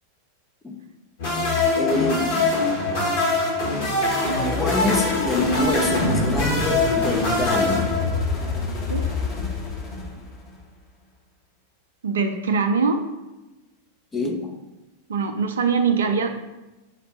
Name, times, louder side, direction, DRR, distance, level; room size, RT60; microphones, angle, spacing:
sound 1, 1.2-8.5, left 2 dB, 55° left, 1.5 m, -23 dB
voice 1, 1.8-2.3 4.6-8.0 14.1-14.6, left 3 dB, 15° left, 1 dB, 0.7 m, -26 dB
sound 2, 4.1-10.6, left 4 dB, 30° left, 1.0 m, -28 dB
voice 2, 12.0-13.0 15.1-16.4, right 5 dB, 65° right, 7 dB, 0.4 m, -22 dB
6.3 x 2.2 x 3.8 m, 1.0 s
figure-of-eight pair, 90°, 0 cm